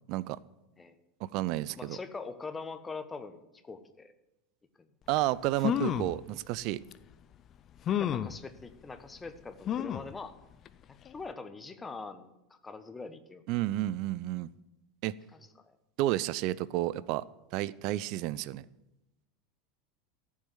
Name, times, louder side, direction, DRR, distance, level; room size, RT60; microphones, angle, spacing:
voice 1, 1.2-2.0 5.1-6.8 13.5-14.5 15.0-15.1 16.0-17.2 17.5-18.6, right 15 dB, 50° right, 19 dB, 0.5 m, -31 dB
voice 2, 1.8-4.1 4.8-4.9 8.0-10.3 10.9-13.4 15.3-15.8, left 4 dB, 15° left, 10 dB, 1.3 m, -43 dB
sound 1, 5.2-5.3 5.6-6.2 6.9-7.0 7.8-8.4 9.7-10.1 10.6-10.7 11.0-11.1, left 10 dB, 35° left, 0.6 m, -30 dB
14.0 x 7.4 x 9.5 m, 0.93 s
figure-of-eight pair, 80°, 0 cm